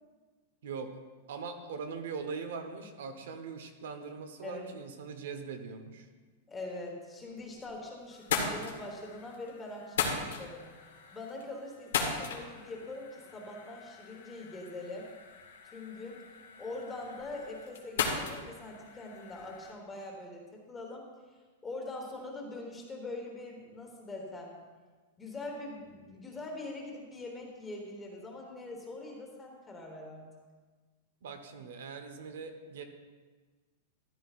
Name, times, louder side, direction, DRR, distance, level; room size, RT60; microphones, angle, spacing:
voice 1, 1.3-6.1 31.2-32.8, right 5 dB, 65° right, 7 dB, 1.0 m, -41 dB
voice 2, 6.5-10.7 11.1-15.1 15.6-16.2 16.6-21.1 21.6-24.6 25.2-30.2, left 2 dB, 10° left, 0 dB, 1.3 m, -43 dB
sound 1, 7.2-7.8 8.1-19.7, left 6 dB, 85° left, 1.7 m, -38 dB
13.5 x 10.5 x 2.5 m, 1.4 s
supercardioid pair, 180°, 0 cm